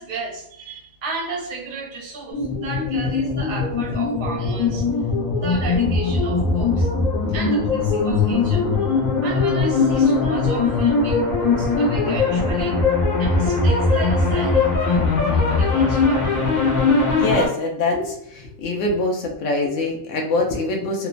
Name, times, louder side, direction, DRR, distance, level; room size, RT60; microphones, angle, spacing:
voice 1, 0.0-4.9 5.4-6.9 7.3-12.8 13.2-16.5, right 4 dB, 80° right, -1 dB, 1.2 m, -34 dB
sound 1, 2.3-17.5, left 4 dB, 85° left, 1.2 m, -20 dB
voice 2, 17.2-21.1, left 2 dB, 70° left, 0 dB, 0.9 m, -23 dB
3.0 x 2.1 x 2.4 m, 0.74 s
omnidirectional pair, 1.4 m